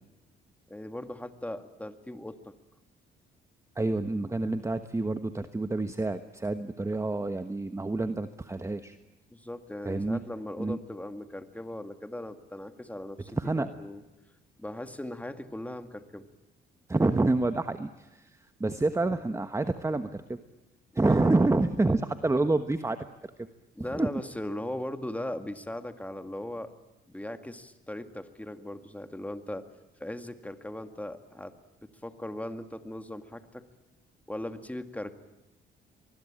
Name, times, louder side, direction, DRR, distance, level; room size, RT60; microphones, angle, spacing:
voice 1, 0.7-2.5 9.3-14.0 14.6-16.3 21.0-21.3 23.8-26.7 27.1-29.6 30.0-31.5 32.0-33.6 34.3-35.2, left 1 dB, 5° left, 8 dB, 2.2 m, -38 dB
voice 2, 3.7-9.0 9.8-10.2 10.6-10.8 13.3-13.7 16.9-18.3 18.6-20.4 20.9-23.0 23.9-24.1, right 2 dB, 15° right, 9 dB, 1.2 m, -28 dB
24.5 x 21.0 x 8.8 m, 1.0 s
cardioid pair, 90°, 20 cm